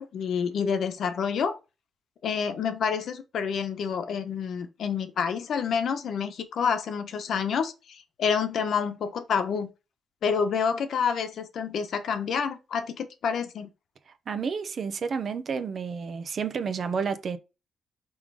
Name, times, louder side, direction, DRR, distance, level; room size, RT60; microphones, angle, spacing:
voice 1, 0.0-1.6 2.2-9.7 10.2-13.7, left 6 dB, 70° left, 1.2 m, -28 dB
voice 2, 14.3-17.4, right 6 dB, 55° right, 0.9 m, -30 dB
5.7 x 3.8 x 4.8 m
cardioid pair, 90°, 0 cm